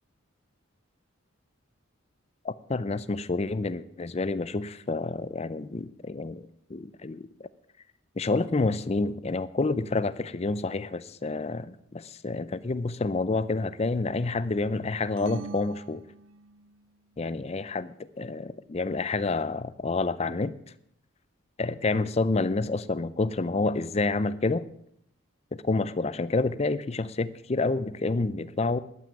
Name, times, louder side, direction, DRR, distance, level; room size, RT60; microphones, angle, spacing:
voice 1, 2.4-7.5 8.2-16.0 17.2-20.5 21.6-24.6 25.5-28.8, left 3 dB, 30° left, 16 dB, 0.5 m, -28 dB
sound 1, 15.2-16.8, right 4 dB, 65° right, 0.4 m, -42 dB
12.5 x 9.2 x 7.0 m, 0.71 s
head